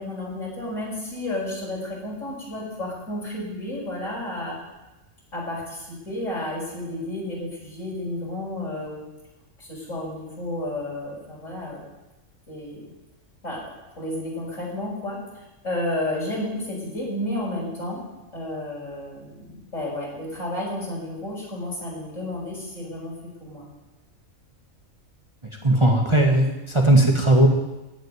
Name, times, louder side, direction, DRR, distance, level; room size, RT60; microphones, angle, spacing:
voice 1, 0.0-4.6 5.3-9.0 9.6-11.8 12.5-12.8 13.4-13.6 14.0-18.0 18.3-23.1 23.4-23.7, left 1 dB, 65° left, -4 dB, 6.1 m, -31 dB
voice 2, 25.6-27.5, right 1 dB, 20° right, 1 dB, 1.4 m, -17 dB
16.0 x 6.4 x 9.5 m, 1.0 s
omnidirectional pair, 1.4 m